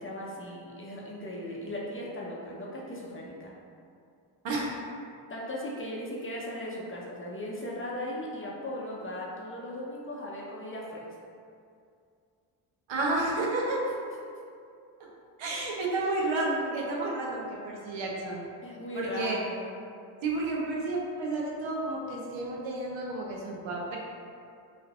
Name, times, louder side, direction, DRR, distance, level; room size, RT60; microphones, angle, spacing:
voice 1, 0.0-3.5 5.3-11.1 13.8-14.1 16.0-16.1 18.6-19.9, left 1 dB, 25° left, -4 dB, 0.6 m, -38 dB
voice 2, 4.4-4.8 12.9-13.8 15.4-18.4 18.9-19.4 20.2-24.0, right 2 dB, 70° right, -3 dB, 0.7 m, -31 dB
3.1 x 2.4 x 2.3 m, 2.4 s
supercardioid pair, 50°, 49 cm